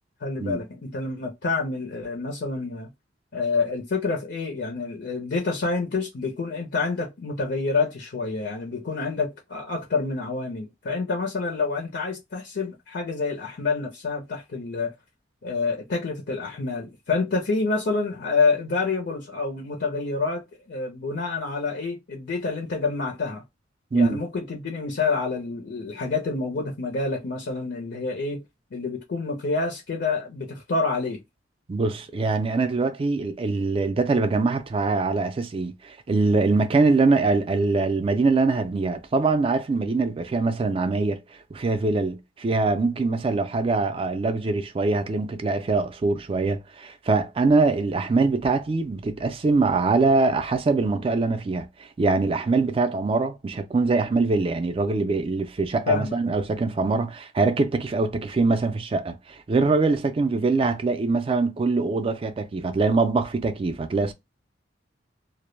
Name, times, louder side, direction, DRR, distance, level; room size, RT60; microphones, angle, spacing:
voice 1, 0.2-2.9 3.3-14.9 15.4-23.4 23.9-28.4 28.7-31.2 55.9-56.2, left 4 dB, 65° left, 0.5 m, -27 dB
voice 2, 31.7-41.2 41.5-64.1, right 3 dB, 30° right, 0.3 m, -23 dB
2.1 x 2.0 x 3.1 m
head